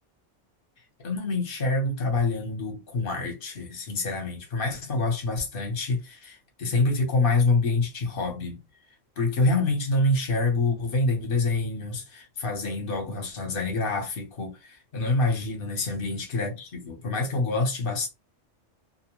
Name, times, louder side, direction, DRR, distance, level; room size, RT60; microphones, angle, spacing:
voice 1, 1.0-8.6 9.2-18.1, left 3 dB, 50° left, 1.1 m, -26 dB
2.7 x 2.1 x 2.9 m
omnidirectional pair, 1.2 m